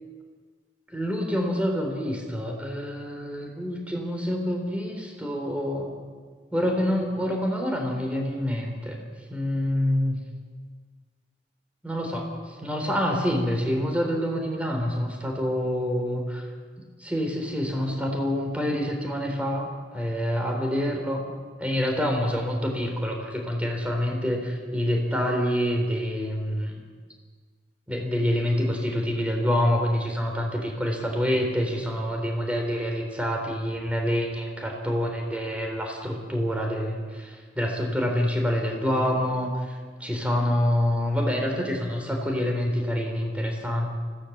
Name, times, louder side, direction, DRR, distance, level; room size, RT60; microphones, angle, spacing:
voice 1, 0.9-5.9 6.5-9.0 9.3-10.2 11.8-16.2 17.0-19.7 19.9-21.2 21.6-26.8 27.9-43.9, equal, 10° right, 1 dB, 4.0 m, -27 dB
25.0 x 17.0 x 7.4 m, 1.5 s
head